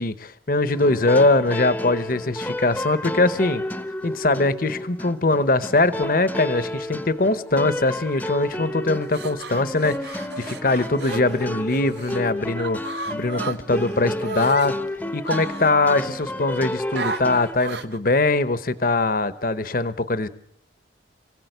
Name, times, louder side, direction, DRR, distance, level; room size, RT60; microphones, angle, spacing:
voice 1, 0.0-3.6 4.0-14.8 15.1-20.3, left 2 dB, 50° left, 14 dB, 1.0 m, -22 dB
sound 1, 0.7-17.6, left 1 dB, 10° left, 0.9 m, -31 dB
sound 2, 8.9-12.2 12.6-14.7 15.3-16.3 17.0-18.0, right 4 dB, 65° right, 1.2 m, -34 dB
24.5 x 17.0 x 8.0 m, 0.73 s
head